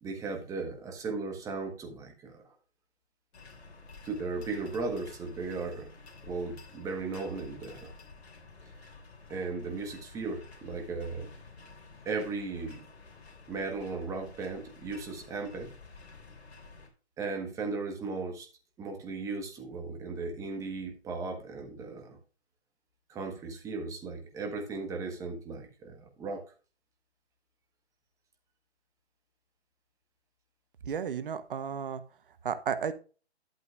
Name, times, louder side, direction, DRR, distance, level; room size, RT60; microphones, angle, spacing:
voice 1, 0.0-2.5 4.0-5.9 6.2-7.9 9.3-11.3 12.0-12.9 13.5-15.7 17.2-18.5 18.8-22.2 23.1-26.4, right 3 dB, 10° right, 3 dB, 1.4 m, -36 dB
sound 1, 3.3-16.9, left 4 dB, 70° left, 3.3 m, -51 dB
voice 2, 30.9-32.0 32.4-32.9, right 7 dB, 50° right, 11 dB, 1.1 m, -33 dB
11.0 x 8.0 x 2.5 m, 0.36 s
hypercardioid pair, 150°, 33 cm